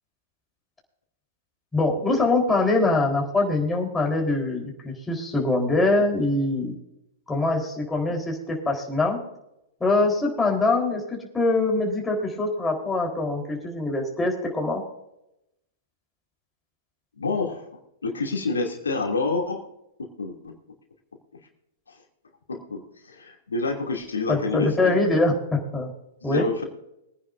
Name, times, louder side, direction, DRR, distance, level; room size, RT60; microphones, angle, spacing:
voice 1, 1.7-6.7 7.3-9.2 9.8-11.0 11.3-14.8 24.3-25.3 25.7-25.9 26.2-26.5, left 2 dB, 10° left, 0 dB, 4.0 m, -23 dB
voice 2, 17.2-17.7 18.0-19.6 20.0-20.5 21.9-22.0 22.5-25.2 26.2-26.6, left 3 dB, 90° left, 1 dB, 2.7 m, -28 dB
23.5 x 10.0 x 2.6 m, 0.85 s
hypercardioid pair, 110°, 0 cm